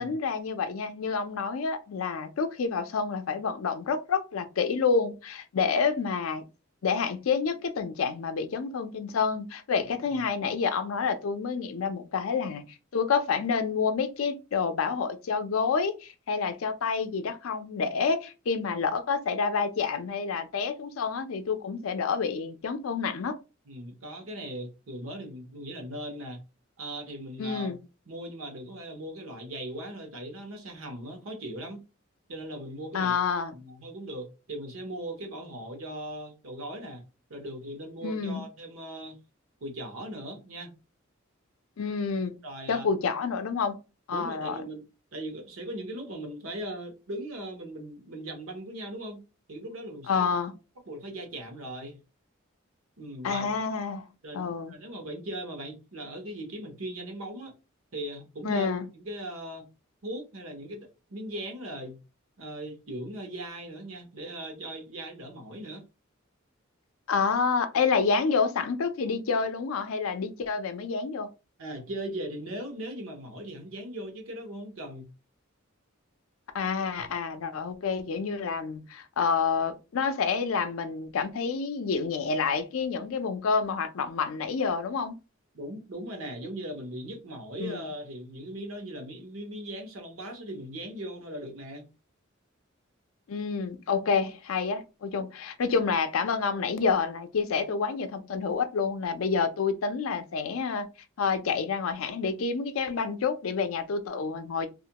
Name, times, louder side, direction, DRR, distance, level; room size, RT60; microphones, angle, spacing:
voice 1, 0.0-6.4 6.8-12.6 12.9-23.4 27.4-27.8 32.9-33.5 38.0-38.5 41.8-42.3 42.7-43.8 44.1-44.6 50.1-50.5 53.2-54.1 54.3-54.7 58.4-58.9 67.1-71.3 76.5-85.1 87.6-87.9 93.3-100.9 101.2-104.7, left 5 dB, 85° left, 0.4 m, -28 dB
voice 2, 23.7-26.4 26.8-27.7 28.1-31.8 32.3-33.2 33.5-37.0 37.3-39.2 39.6-40.7 42.4-42.9 44.1-44.8 45.1-49.2 49.5-50.3 50.9-52.0 53.0-53.7 54.2-57.5 57.9-59.7 60.0-62.0 62.4-65.8 71.6-75.1 85.5-91.9, right 1 dB, 80° right, 0.8 m, -39 dB
2.4 x 2.2 x 2.8 m
head